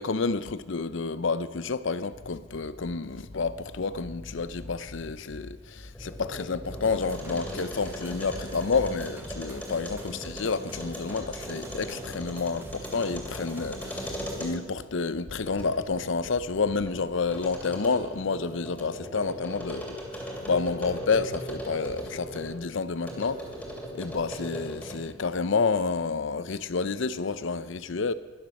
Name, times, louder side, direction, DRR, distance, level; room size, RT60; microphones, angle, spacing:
voice 1, 0.0-23.4 23.9-28.1, left 4 dB, 65° left, 0.6 m, -29 dB
sound 1, 2.1-10.5, left 1 dB, 30° left, 0.8 m, -46 dB
sound 2, 5.8-14.8 15.3-22.6 23.0-25.1, equal, 5° left, 2.8 m, -39 dB
sound 3, 6.7-14.5, right 1 dB, 10° right, 1.3 m, -46 dB
21.5 x 7.3 x 6.4 m
head